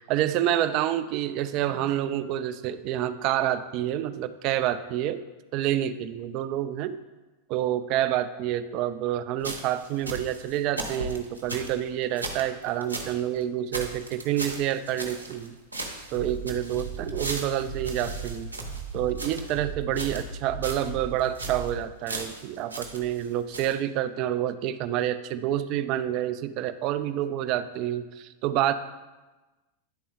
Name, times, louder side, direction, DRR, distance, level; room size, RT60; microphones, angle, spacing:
voice 1, 0.0-5.2 5.5-7.0 7.5-15.5 16.1-18.5 18.9-28.7, right 11 dB, 40° right, 12 dB, 0.4 m, -28 dB
sound 1, 9.4-13.2 13.4-13.5 13.7-15.5 15.7-19.6 19.9-20.4 20.6-20.9 21.2-21.7 22.1-23.3 23.5-23.7, right 2 dB, 85° right, 0.9 m, -37 dB
Bass drum, 16.1-21.7, right 4 dB, 80° left, 1.6 m, -37 dB
10.0 x 4.2 x 3.6 m, 1.2 s
figure-of-eight pair, 90°, 0 cm